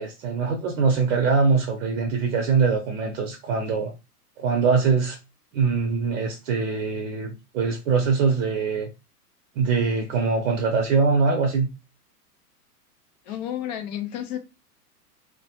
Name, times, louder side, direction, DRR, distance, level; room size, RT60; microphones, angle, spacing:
voice 1, 0.0-3.9 4.4-5.2 5.5-8.9 9.6-11.7, right 5 dB, 55° right, 0.7 m, -23 dB
voice 2, 13.3-14.4, left 11 dB, 30° left, 0.4 m, -31 dB
2.2 x 2.1 x 2.8 m
hypercardioid pair, 115°, 47 cm